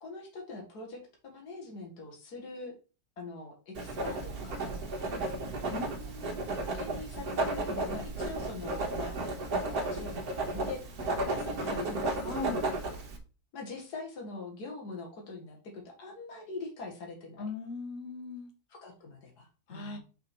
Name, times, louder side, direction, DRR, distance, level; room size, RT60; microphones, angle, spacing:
voice 1, 0.0-2.7 3.2-5.3 5.7-6.1 6.7-9.2 9.6-10.8 11.2-12.6 13.5-17.5 18.7-20.0, left 3 dB, 75° left, 1 dB, 2.2 m, -43 dB
Writing, 3.7-13.2, right 2 dB, 70° right, 1.8 m, -34 dB
voice 2, 5.7-6.4 12.2-12.6 17.4-18.5 19.7-20.0, left 3 dB, 50° left, 4 dB, 1.6 m, -39 dB
5.8 x 4.9 x 4.5 m, 0.35 s
omnidirectional pair, 1.7 m